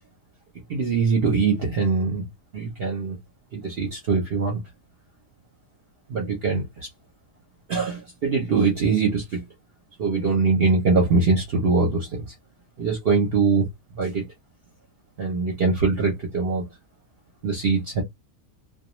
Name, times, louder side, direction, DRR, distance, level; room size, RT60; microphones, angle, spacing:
voice 1, 0.7-2.3 2.5-3.2 3.5-4.6 6.1-6.9 7.7-9.4 10.0-12.1 12.8-13.7 13.9-14.2 15.2-16.6 17.4-18.0, right 4 dB, 55° right, 0.8 m, -22 dB
2.3 x 2.3 x 2.9 m
omnidirectional pair, 1.5 m